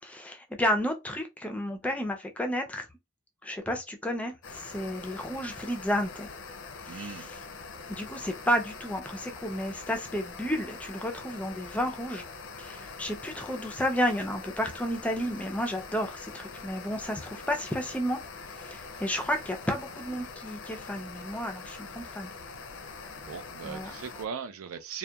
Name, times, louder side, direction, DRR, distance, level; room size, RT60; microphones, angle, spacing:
voice 1, 0.0-2.9 3.4-6.3 6.9-7.3 7.9-12.2 12.6-18.2 18.6-22.3 23.6-23.9, equal, 5° left, 0.3 m, -32 dB
sound 1, 4.4-24.3, left 4 dB, 70° left, 0.5 m, -44 dB
voice 2, 6.9-7.3 23.2-25.0, right 6 dB, 90° right, 0.4 m, -39 dB
2.7 x 2.1 x 2.2 m
head